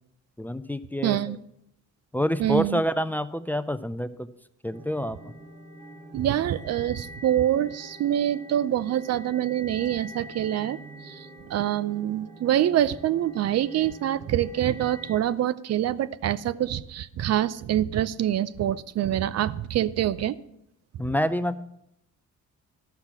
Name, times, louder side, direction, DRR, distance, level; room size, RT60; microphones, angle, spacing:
voice 1, 0.4-1.4 2.1-4.3 4.6-5.3 21.0-21.6, equal, 5° left, 14 dB, 0.4 m, -27 dB
voice 2, 1.0-1.4 2.4-2.8 6.1-10.8 11.0-11.2 11.5-20.4, right 11 dB, 55° right, 17 dB, 0.5 m, -25 dB
sound 1, 4.7-15.2, equal, 25° right, 1.1 m, -46 dB
11.5 x 5.9 x 6.0 m, 0.79 s
cardioid pair, 90°, 30 cm